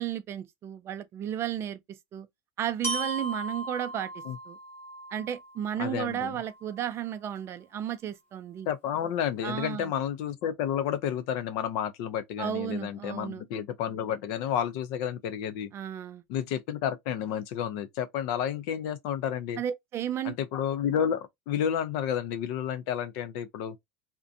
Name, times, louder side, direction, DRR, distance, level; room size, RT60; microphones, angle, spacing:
voice 1, 0.0-1.8 2.1-2.3 2.6-4.1 4.5-4.6 5.1-8.7 9.4-9.9 12.4-13.4 15.7-16.2 19.6-20.3, right 10 dB, 35° right, 0.4 m, -33 dB
Glockenspiel, 2.8-6.8, right 1 dB, 30° left, 1.1 m, -37 dB
voice 2, 5.8-6.3 8.7-15.7 16.3-19.6 20.2-23.8, left 9 dB, 65° left, 0.4 m, -31 dB
2.5 x 2.2 x 2.5 m
supercardioid pair, 120°, 7 cm